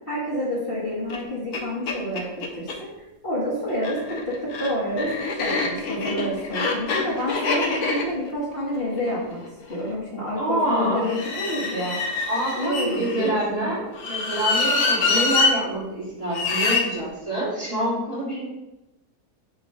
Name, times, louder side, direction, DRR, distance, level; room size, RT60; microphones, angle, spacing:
voice 1, 0.1-2.9 3.2-9.4 9.7-12.0 12.5-14.0, equal, 35° left, -7 dB, 1.4 m, -28 dB
sound 1, 1.1-1.2 1.5-1.6 1.9-2.8 3.7-9.9 11.0-13.3 13.9-15.5 16.3-16.8, left 4 dB, 70° left, 1.3 m, -25 dB
voice 2, 10.4-11.1 12.3-18.5, right 1 dB, 20° right, -8 dB, 2.5 m, -26 dB
6.6 x 3.1 x 5.2 m, 0.95 s
omnidirectional pair, 1.7 m